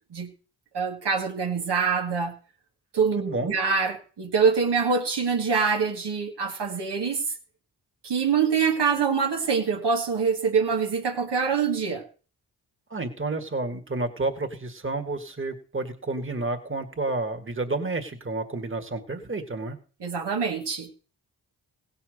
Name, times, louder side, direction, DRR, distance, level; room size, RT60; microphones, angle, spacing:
voice 1, 0.7-2.3 2.9-7.2 8.0-12.0 20.0-20.9, right 5 dB, 75° right, 2 dB, 1.9 m, -25 dB
voice 2, 3.2-3.5 12.9-19.8, right 2 dB, 30° right, 6 dB, 1.9 m, -30 dB
16.5 x 5.8 x 6.6 m, 0.38 s
cardioid pair, 45°, 41 cm